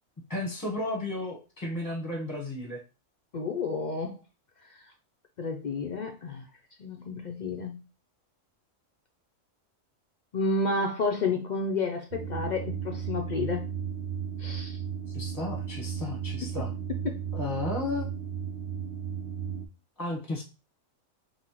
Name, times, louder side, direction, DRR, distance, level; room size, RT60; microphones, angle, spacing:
voice 1, 0.3-2.8 15.1-16.7 17.3-18.1 20.0-20.4, left 2 dB, 15° left, -1 dB, 0.8 m, -33 dB
voice 2, 3.3-4.2 4.7-4.9 5.4-6.5 6.8-7.8 10.3-13.7 14.4-14.8 17.0-17.2, left 3 dB, 65° left, 2 dB, 0.4 m, -31 dB
sound 1, 12.1-19.7, right 8 dB, 65° right, 0.7 m, -35 dB
5.4 x 2.6 x 2.9 m, 0.31 s
omnidirectional pair, 1.3 m